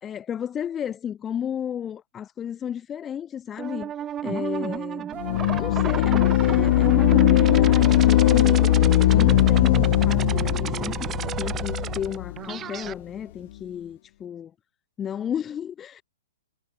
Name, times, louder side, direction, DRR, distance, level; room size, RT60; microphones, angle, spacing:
voice 1, 0.0-3.9 4.2-5.1 5.6-8.8 9.1-14.5 15.0-16.0, left 9 dB, 15° left, 6.3 m, -33 dB
sound 1, 3.6-12.9, right 10 dB, 15° right, 2.7 m, -31 dB
sound 2, 5.2-12.4, left 15 dB, 45° left, 1.1 m, -20 dB
hypercardioid pair, 165°, 0 cm